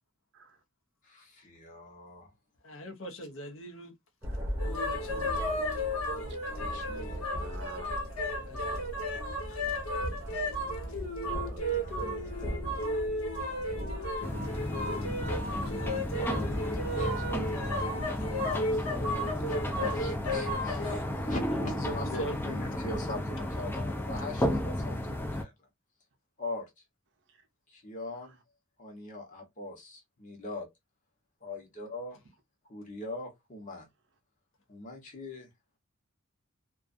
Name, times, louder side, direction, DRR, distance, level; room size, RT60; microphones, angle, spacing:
voice 1, 1.0-2.3 6.5-7.2 11.7-12.4 16.8-17.8 18.0-18.9 19.5-20.9 21.2-25.5 26.4-26.7 27.7-28.4 28.8-30.7 31.4-32.2 32.7-33.9 34.7-35.5, left 2 dB, 35° left, 0.8 m, -42 dB
voice 2, 2.6-3.9 4.6-5.4 8.4-8.8 21.5-21.6 22.2-22.3, right 1 dB, 65° left, 0.6 m, -41 dB
Thunder, 4.2-20.9, equal, 10° right, 0.7 m, -41 dB
sound 1, 4.6-21.0, left 1 dB, 90° left, 1.1 m, -34 dB
voice 3, 5.3-6.0 6.9-7.9 9.9-10.0 11.3-11.6, right 2 dB, 55° right, 0.6 m, -50 dB
sound 2, 14.2-25.4, left 1 dB, 10° left, 0.3 m, -33 dB
2.4 x 2.3 x 2.5 m
head